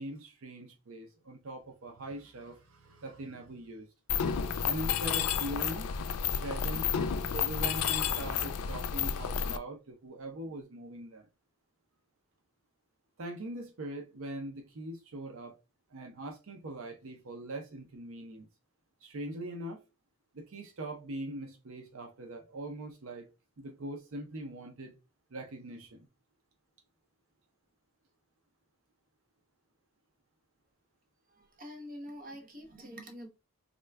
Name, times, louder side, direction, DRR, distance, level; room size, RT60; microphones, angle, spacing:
voice 1, 0.0-3.9 4.4-5.9 6.4-6.9 7.3-11.3 13.2-15.6 15.9-18.5 19.0-19.8 20.3-23.3 23.6-25.0 25.3-26.1, right 1 dB, 70° right, 0.6 m, -42 dB
Mechanisms, 4.1-9.6, left 7 dB, 85° left, 0.4 m, -31 dB
voice 2, 31.3-33.3, equal, 40° right, 0.8 m, -46 dB
3.6 x 2.2 x 3.4 m
head